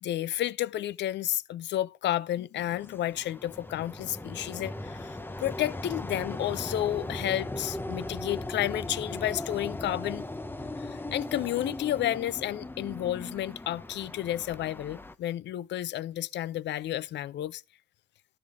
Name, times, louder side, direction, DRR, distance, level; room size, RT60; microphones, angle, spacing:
voice 1, 0.0-10.2 10.8-17.6, left 13 dB, 65° left, 0.4 m, -31 dB
sound 1, 2.6-15.1, left 1 dB, 10° left, 0.6 m, -38 dB
12.5 x 8.8 x 3.5 m
cardioid pair, 90°, 20 cm